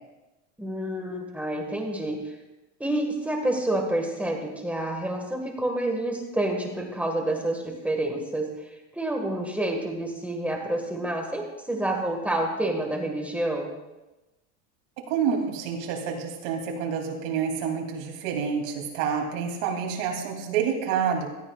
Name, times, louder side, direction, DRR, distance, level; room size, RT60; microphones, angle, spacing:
voice 1, 0.6-2.3 2.8-8.5 8.9-13.7, right 1 dB, 5° right, 2 dB, 1.7 m, -28 dB
voice 2, 15.1-21.3, right 7 dB, 70° right, 1 dB, 3.0 m, -28 dB
16.5 x 13.5 x 2.4 m, 1.0 s
supercardioid pair, 135°, 35 cm